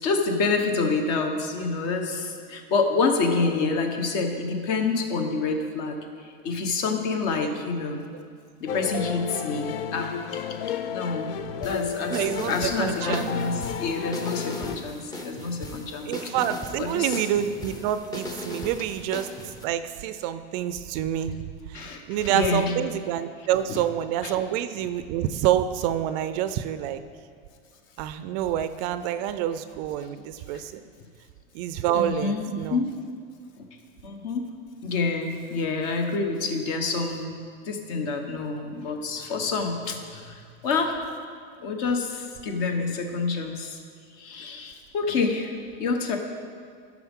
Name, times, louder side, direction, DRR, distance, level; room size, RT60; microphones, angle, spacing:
voice 1, 0.0-8.0 8.6-10.1 10.9-16.3 16.8-17.2 21.7-22.7 23.7-23.8 24.2-24.3 30.5-30.6 31.9-33.0 33.6-33.7 34.0-34.5 34.8-41.0 41.6-43.8 44.2-45.5 45.8-46.2, left 4 dB, 50° left, 4 dB, 1.2 m, -28 dB
sound 1, 8.7-14.8, left 8 dB, 75° left, 0.6 m, -32 dB
sound 2, 11.6-19.6, left 1 dB, 15° left, 0.7 m, -38 dB
voice 2, 12.1-13.4 16.1-19.3 19.6-21.4 21.7-27.0 28.0-30.8 31.5-32.8, right 11 dB, 45° right, 11 dB, 0.4 m, -27 dB
14.5 x 6.2 x 3.6 m, 2.2 s
supercardioid pair, 150°, 29 cm